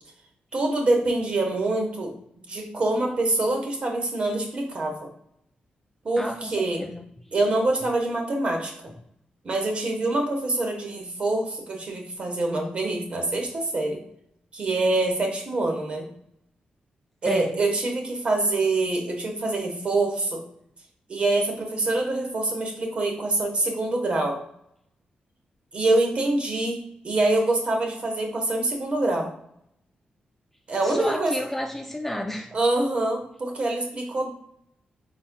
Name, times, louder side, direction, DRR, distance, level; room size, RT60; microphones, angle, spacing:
voice 1, 0.5-2.1 2.5-5.1 6.0-6.8 7.3-8.9 9.4-14.0 14.5-16.1 17.2-20.4 21.1-24.4 25.7-26.8 27.0-29.3 30.7-31.4 32.5-34.3, right 2 dB, 40° right, 2 dB, 1.1 m, -25 dB
voice 2, 6.2-7.0 17.2-17.6 30.8-32.5, left 1 dB, 10° left, 3 dB, 0.3 m, -31 dB
5.5 x 4.2 x 2.2 m, 0.73 s
wide cardioid pair, 150°, 3 cm